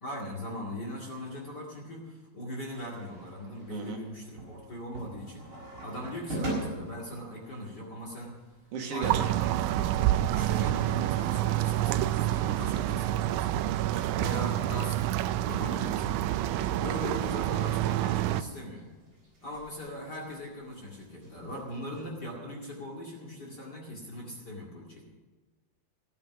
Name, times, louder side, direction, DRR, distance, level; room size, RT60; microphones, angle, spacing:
voice 1, 0.0-8.4 8.9-9.3 10.3-13.7 14.2-15.0 15.5-16.2 16.7-18.9 19.4-25.0, equal, 35° left, -2 dB, 2.2 m, -40 dB
sound 1, 2.6-22.2, right 1 dB, 35° right, 5.7 m, -45 dB
voice 2, 8.7-9.3 13.9-14.2 16.5-16.7, right 5 dB, 65° right, 2 dB, 2.8 m, -37 dB
sound 2, 9.0-18.4, right 13 dB, 85° right, 1.7 m, -28 dB
16.0 x 9.4 x 6.1 m, 1.3 s
omnidirectional pair, 4.1 m